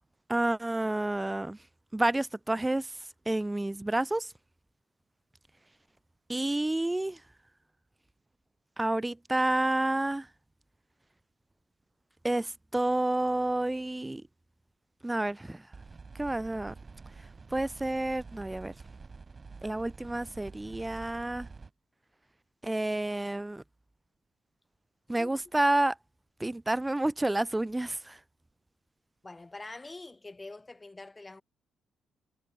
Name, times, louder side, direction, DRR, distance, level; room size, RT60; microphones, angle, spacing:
voice 1, 0.3-1.6 1.9-2.9 3.3-4.3 6.3-7.2 8.8-10.3 12.2-14.2 15.0-15.6 16.2-16.7 17.5-18.7 19.6-21.5 22.6-23.6 25.1-25.9 26.4-28.2, right 1 dB, 10° right, 0.7 m, -29 dB
sound 1, 15.7-21.7, right 4 dB, 30° right, 2.6 m, -48 dB
voice 2, 29.2-31.4, left 2 dB, 20° left, 5.8 m, -45 dB
cardioid pair, 90°, 0 cm